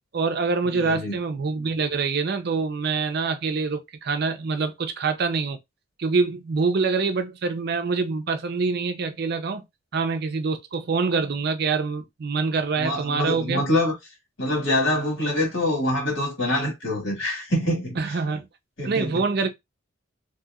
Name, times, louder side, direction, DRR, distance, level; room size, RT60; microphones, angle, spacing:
voice 1, 0.1-5.6 6.0-9.6 9.9-13.6 18.0-18.5 18.8-19.5, right 4 dB, 50° right, 0.4 m, -25 dB
voice 2, 0.7-1.2 12.8-14.0 14.4-18.2 18.8-19.2, left 1 dB, 65° left, 1.7 m, -25 dB
2.8 x 2.7 x 2.3 m
head